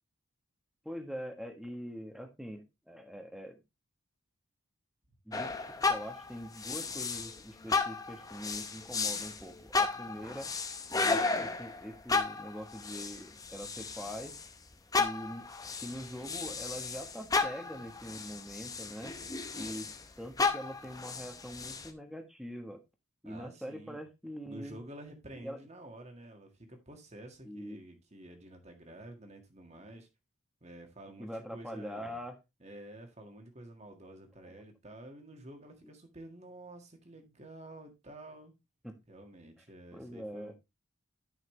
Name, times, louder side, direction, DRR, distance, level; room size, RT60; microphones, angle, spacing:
voice 1, 0.8-3.6 5.3-5.5 5.9-10.5 10.9-14.3 15.0-15.5 15.8-19.1 19.5-19.9 20.2-22.8 23.2-24.8 25.4-25.6 27.4-27.8 31.2-32.4 38.8-39.0 39.9-40.5, equal, ahead, 1.2 m, -43 dB
sound 1, 5.3-7.4 7.7-14.5 14.9-20.0 20.4-21.9, left 4 dB, 15° left, 0.7 m, -34 dB
voice 2, 23.2-24.0 24.5-30.1 30.6-32.2 32.6-38.5 39.1-40.5, right 1 dB, 30° right, 1.7 m, -50 dB
11.0 x 5.7 x 3.2 m
head